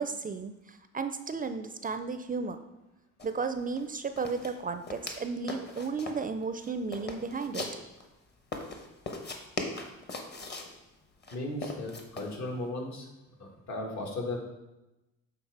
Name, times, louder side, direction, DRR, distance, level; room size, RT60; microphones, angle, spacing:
voice 1, 0.0-2.6 3.2-7.8, right 4 dB, 30° right, 9 dB, 0.4 m, -34 dB
sound 1, 3.2-3.3 3.6-3.8 4.2-5.2 5.5-6.3 6.6-8.1 8.5-10.7 11.2-12.3, left 3 dB, 35° left, 1.0 m, -39 dB
voice 2, 11.3-13.1 13.4-14.4, left 2 dB, 65° left, 1 dB, 1.6 m, -36 dB
7.2 x 3.6 x 4.7 m, 0.97 s
cardioid pair, 90°, 30 cm